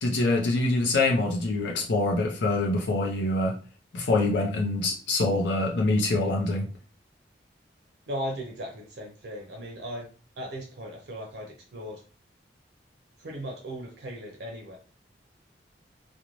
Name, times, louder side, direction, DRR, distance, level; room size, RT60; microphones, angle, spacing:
voice 1, 0.0-3.6 3.9-6.7, left 2 dB, 80° left, -1 dB, 0.5 m, -25 dB
voice 2, 8.1-10.1 10.4-12.0 13.2-14.8, equal, 70° right, 0 dB, 0.5 m, -37 dB
2.5 x 2.1 x 3.0 m, 0.38 s
head